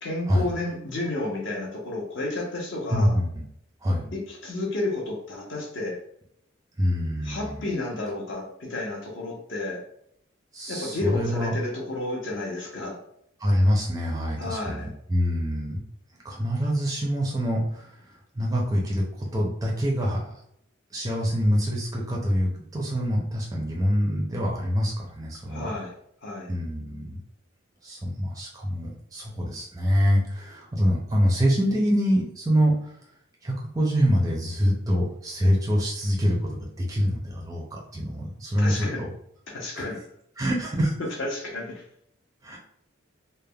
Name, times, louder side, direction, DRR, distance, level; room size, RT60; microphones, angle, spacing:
voice 1, 0.0-3.1 4.1-6.0 7.2-9.8 10.7-13.0 14.4-14.9 25.5-25.9 26.2-26.5 38.6-39.0 39.5-40.0 41.2-41.8, left 2 dB, 60° left, -1 dB, 0.7 m, -31 dB
voice 2, 2.9-3.4 3.8-4.1 6.8-7.6 10.5-11.5 13.4-15.8 16.2-18.1 18.3-20.4 20.9-25.7 26.5-27.2 27.8-32.9 33.4-36.4 36.6-39.1 39.7-39.9 40.4-40.9 42.4-42.6, equal, 15° right, -2 dB, 0.4 m, -25 dB
3.3 x 2.0 x 2.2 m, 0.72 s
head